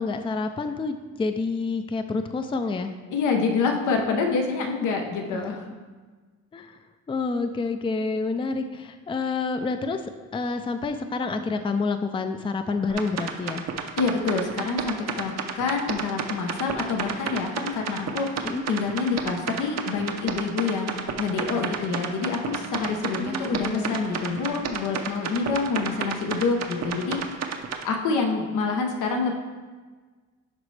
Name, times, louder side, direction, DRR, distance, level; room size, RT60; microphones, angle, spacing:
voice 1, 0.0-2.9 5.3-5.5 6.5-6.8 7.1-13.7 18.4-18.6 23.2-23.9, left 4 dB, 15° left, 7 dB, 0.4 m, -28 dB
voice 2, 3.1-5.7 14.0-27.4 27.8-29.3, left 4 dB, 85° left, 3 dB, 1.1 m, -27 dB
sound 1, 12.9-27.8, right 7 dB, 60° right, 0.7 m, -31 dB
11.0 x 4.1 x 3.3 m, 1.4 s
cardioid pair, 90°, 30 cm